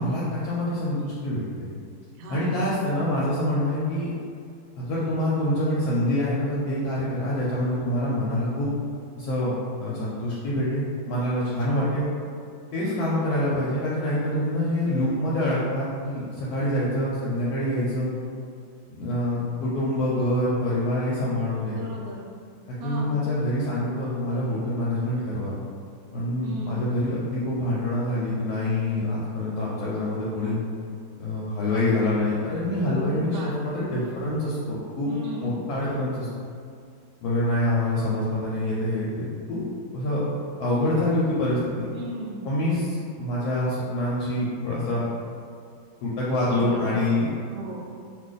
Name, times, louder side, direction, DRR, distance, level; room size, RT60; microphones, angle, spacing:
voice 1, 0.0-1.7 2.3-4.1 4.8-8.7 9.1-9.5 9.8-12.1 12.7-18.1 19.0-21.8 22.7-25.5 26.1-30.6 31.2-35.2 35.4-36.3 37.2-39.6 39.9-40.2 40.6-41.9 42.4-45.0 46.0-47.3, left 1 dB, 70° left, -7 dB, 1.0 m, -26 dB
voice 2, 2.2-2.5 11.7-12.0 12.8-13.2 21.6-22.3 22.8-23.2 26.4-27.0 33.1-33.7 35.0-35.8 41.9-42.5 46.5-47.1 47.4-47.8, right 2 dB, 90° right, -1 dB, 1.2 m, -37 dB
2.5 x 2.4 x 3.8 m, 2.3 s
omnidirectional pair, 1.8 m